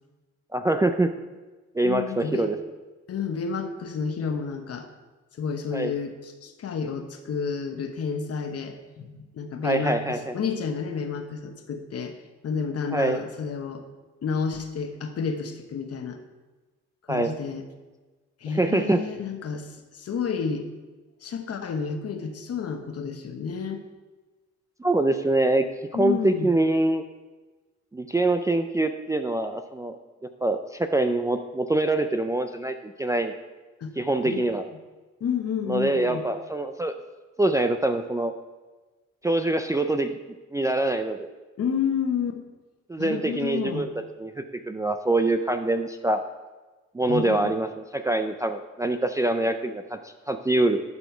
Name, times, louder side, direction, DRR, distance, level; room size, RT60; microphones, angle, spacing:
voice 1, 0.5-1.1 1.7-2.6 5.7-5.9 9.6-10.3 12.9-13.2 17.1-17.3 18.5-19.0 24.8-25.6 25.9-27.0 27.9-30.0 30.2-33.3 34.0-34.7 35.7-36.9 37.4-38.3 39.2-40.1 40.5-41.3 42.9-43.9 44.2-46.2 46.9-50.8, right 2 dB, 10° right, 7 dB, 0.3 m, -24 dB
voice 2, 1.8-2.5 3.1-4.9 5.4-12.1 12.4-13.8 14.2-16.2 17.1-17.6 18.4-20.7 21.2-23.8 25.9-26.5 33.8-33.9 34.2-34.5 35.2-36.2 41.6-42.4 43.0-43.9 47.1-47.5, left 6 dB, 55° left, 6 dB, 1.0 m, -30 dB
12.0 x 4.3 x 4.5 m, 1.3 s
cardioid pair, 90°, 30 cm